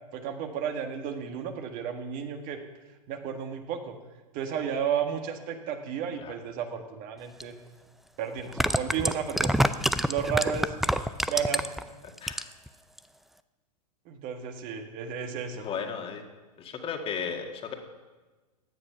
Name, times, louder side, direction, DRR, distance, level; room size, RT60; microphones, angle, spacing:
voice 1, 0.1-2.6 3.1-3.9 4.3-7.5 8.2-9.5 10.1-10.7 11.3-11.6 14.0-15.7, right 7 dB, 40° right, 5 dB, 1.7 m, -32 dB
sound 1, 7.4-7.5 8.4-11.8 12.2-12.7 13.0-13.1, equal, ahead, 0.4 m, -26 dB
voice 2, 12.2-12.5 15.6-16.2 16.6-17.8, left 6 dB, 25° left, 4 dB, 1.9 m, -35 dB
16.0 x 9.8 x 5.8 m, 1.2 s
hypercardioid pair, 115°, 20 cm